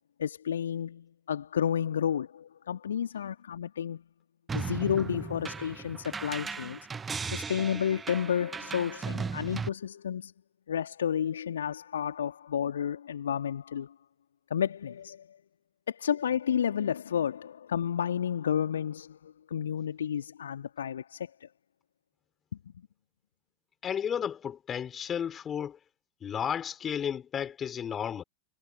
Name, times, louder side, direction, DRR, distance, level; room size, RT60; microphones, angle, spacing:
voice 1, 0.0-4.0 4.5-6.8 7.2-10.3 10.7-13.9 14.5-15.4 15.9-21.5, left 8 dB, 65° left, 2.3 m, -31 dB
sound 1, 4.5-9.7, right 5 dB, 15° right, 1.1 m, -37 dB
voice 2, 23.8-25.8 26.2-28.2, left 8 dB, 25° left, 4.5 m, -33 dB
figure-of-eight pair, 90°, 0 cm